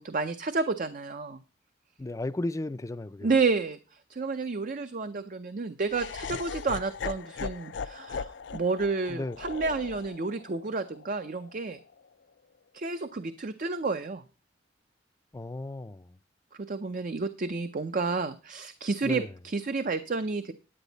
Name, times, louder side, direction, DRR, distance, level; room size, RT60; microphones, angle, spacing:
voice 1, 0.0-1.4 3.2-11.8 12.7-14.2 16.6-20.5, right 4 dB, 45° right, 0.6 m, -30 dB
voice 2, 2.0-3.3 9.1-9.4 15.3-16.1 19.0-19.3, left 2 dB, 20° left, 0.4 m, -34 dB
Laughter, 5.9-12.0, left 5 dB, 85° left, 0.4 m, -39 dB
10.0 x 9.1 x 3.9 m
head